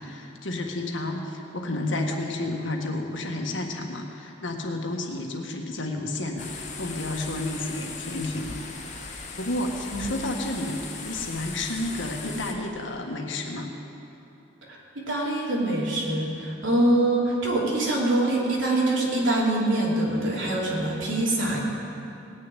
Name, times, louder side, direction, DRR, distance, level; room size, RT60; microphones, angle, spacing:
voice 1, 0.0-8.6 9.4-13.7, left 2 dB, 80° left, 2 dB, 1.7 m, -31 dB
sound 1, 6.4-12.5, left 4 dB, 40° left, 1.4 m, -38 dB
voice 2, 14.7-21.6, right 1 dB, 80° right, -3 dB, 3.1 m, -24 dB
18.5 x 6.8 x 9.2 m, 2.8 s
head